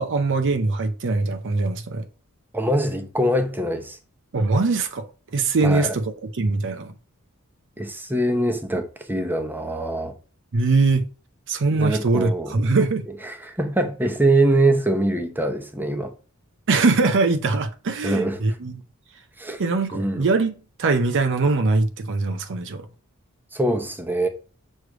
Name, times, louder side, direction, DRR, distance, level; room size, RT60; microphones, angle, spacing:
voice 1, 0.0-2.0 4.3-5.1 5.3-6.9 10.5-11.0 11.5-13.0 16.7-18.8 19.6-20.5 20.8-22.8, right 3 dB, 60° right, 0.6 m, -22 dB
voice 2, 2.5-4.0 5.6-6.0 7.8-10.1 11.7-12.5 13.2-16.1 18.0-18.4 19.4-19.6 19.9-20.3 23.5-24.3, right 1 dB, 10° right, 0.8 m, -23 dB
6.4 x 3.2 x 4.8 m
head